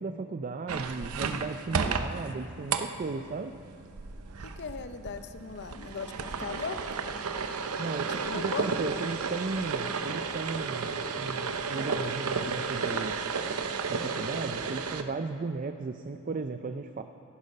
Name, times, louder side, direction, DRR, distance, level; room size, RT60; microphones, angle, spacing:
voice 1, 0.0-3.5 7.8-13.2 13.9-17.0, right 4 dB, 40° right, 8 dB, 0.4 m, -35 dB
sound 1, 0.7-15.0, right 5 dB, 75° right, 0.7 m, -33 dB
voice 2, 4.4-6.8 8.1-8.7, left 5 dB, 50° left, 9 dB, 0.7 m, -38 dB
15.5 x 10.5 x 5.4 m, 2.5 s
head